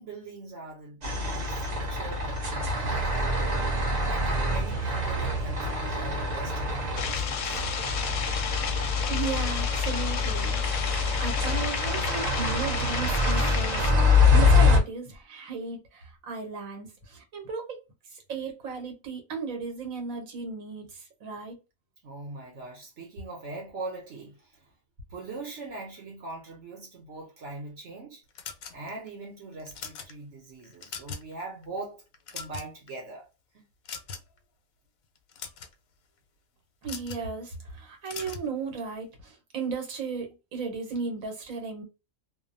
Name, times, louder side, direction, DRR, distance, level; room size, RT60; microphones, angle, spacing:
voice 1, 0.0-7.6 22.0-24.7 25.1-28.2 28.7-32.0 32.3-33.3 33.5-33.7, right 3 dB, 65° right, 1.1 m, -42 dB
sound 1, 1.0-14.8, left 3 dB, 40° right, 0.7 m, -25 dB
sound 2, 7.0-13.9, left 7 dB, 65° left, 0.7 m, -33 dB
voice 2, 9.1-10.6 10.9-13.9 14.3-17.8 18.1-21.6 36.8-41.8, right 4 dB, 80° right, 1.3 m, -35 dB
sound 3, 28.4-29.1 29.6-30.1 30.6-31.3 31.6-31.8 32.1-32.9 33.9-34.4 35.2-35.7 36.8-37.3 38.1-38.5, left 6 dB, 90° left, 1.1 m, -40 dB
2.7 x 2.0 x 2.6 m
omnidirectional pair, 1.4 m